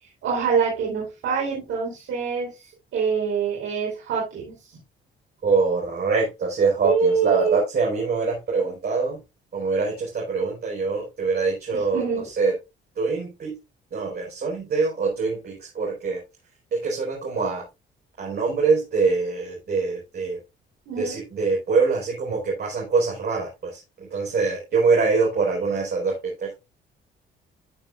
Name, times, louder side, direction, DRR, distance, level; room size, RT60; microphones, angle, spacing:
voice 1, 0.0-4.7 6.8-7.6 11.7-12.3 20.9-21.2, right 6 dB, 85° right, -3 dB, 4.4 m, -25 dB
voice 2, 5.4-9.2 9.5-12.0 12.4-12.6 13.0-13.6 13.9-16.2 16.7-17.6 18.2-20.4 21.0-26.5, right 4 dB, 55° right, -3 dB, 4.9 m, -24 dB
14.0 x 6.9 x 2.5 m, 0.25 s
cardioid pair, 90°, 20 cm